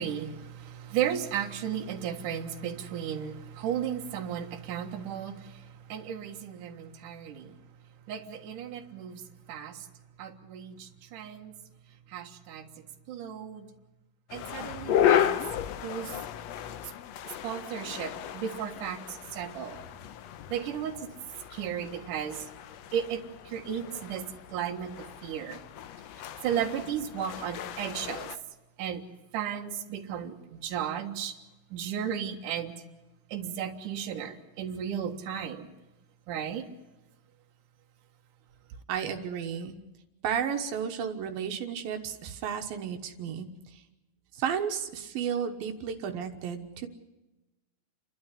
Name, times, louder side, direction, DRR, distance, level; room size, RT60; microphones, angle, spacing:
voice 1, 0.0-7.6 8.1-9.9 10.2-11.5 12.1-12.7 13.1-13.7 14.3-15.4 15.8-16.2 17.4-19.8 20.5-21.1 21.5-22.5 22.9-25.6 26.4-28.3 28.8-29.0 29.3-31.3 31.7-32.7 33.3-35.7 36.3-36.7, right 9 dB, 65° right, 4 dB, 2.9 m, -35 dB
sound 1, 14.3-28.4, left 10 dB, 75° left, 1.5 m, -33 dB
voice 2, 38.9-39.8 40.2-43.8 44.3-46.9, right 7 dB, 85° right, 5 dB, 3.1 m, -33 dB
29.5 x 12.0 x 9.9 m, 1.1 s
omnidirectional pair, 4.1 m